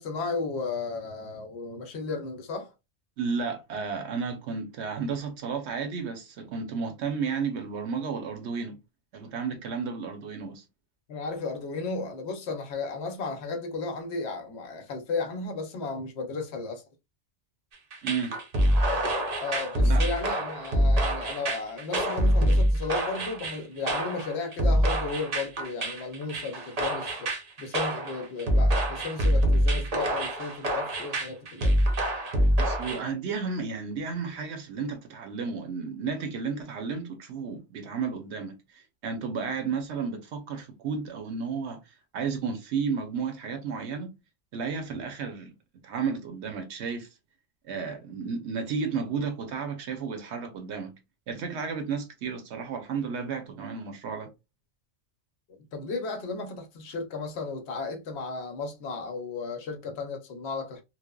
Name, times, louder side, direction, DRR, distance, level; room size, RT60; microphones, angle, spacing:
voice 1, 0.0-2.7 11.1-16.8 19.4-27.3 27.6-31.7 55.7-60.8, left 4 dB, 65° left, 0.9 m, -34 dB
voice 2, 3.2-8.8 9.1-10.6 18.0-18.4 19.8-20.1 32.6-41.8 42.1-44.1 44.5-45.5 45.8-47.1 47.7-50.9 51.3-54.3, right 5 dB, 75° right, 0.9 m, -32 dB
sound 1, 17.9-33.0, equal, 45° right, 0.6 m, -25 dB
3.1 x 2.0 x 2.2 m
omnidirectional pair, 1.2 m